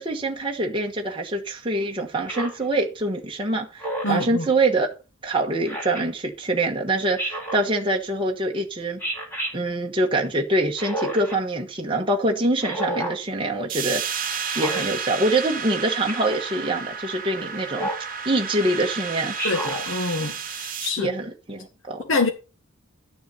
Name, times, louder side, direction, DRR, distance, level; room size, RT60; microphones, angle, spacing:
voice 1, 0.0-4.9 5.2-9.0 9.5-14.0 14.5-17.9 18.2-19.3 21.0-22.0, right 2 dB, 25° right, 1.3 m, -25 dB
Speech synthesizer, 2.3-2.6 3.8-4.3 5.7-6.0 7.2-7.6 9.0-9.5 10.8-11.3 12.6-13.2 14.4-14.8 16.1-16.4 17.7-18.1 19.4-19.8, right 1 dB, 10° left, 4.3 m, -30 dB
voice 2, 4.0-4.5 19.4-21.1 22.0-22.3, left 3 dB, 60° left, 1.4 m, -26 dB
sound 1, 13.7-20.9, right 6 dB, 40° right, 1.0 m, -31 dB
12.0 x 6.8 x 4.3 m
head